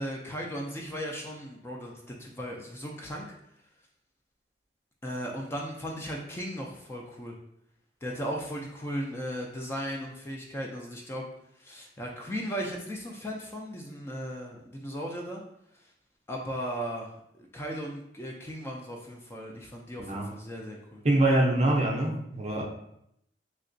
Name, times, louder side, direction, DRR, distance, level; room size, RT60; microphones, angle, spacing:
voice 1, 0.0-1.9 2.2-3.4 5.0-7.4 8.0-11.2 11.6-15.4 16.3-17.1 17.4-21.0, equal, 15° left, -1 dB, 0.3 m, -36 dB
voice 2, 21.0-22.6, right 1 dB, 40° right, 0 dB, 0.5 m, -24 dB
3.3 x 2.8 x 2.6 m, 0.76 s
head